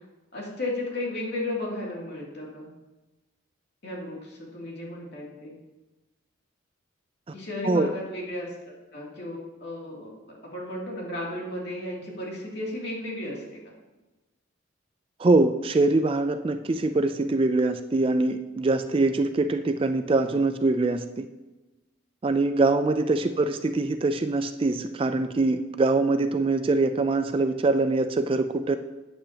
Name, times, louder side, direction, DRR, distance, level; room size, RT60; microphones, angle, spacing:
voice 1, 0.3-2.7 3.8-5.6 7.3-10.1 10.5-13.6, left 1 dB, 55° left, -3 dB, 2.7 m, -34 dB
voice 2, 15.2-21.3 22.2-28.8, right 2 dB, 25° right, 9 dB, 0.3 m, -23 dB
13.0 x 8.9 x 2.9 m, 1.1 s
head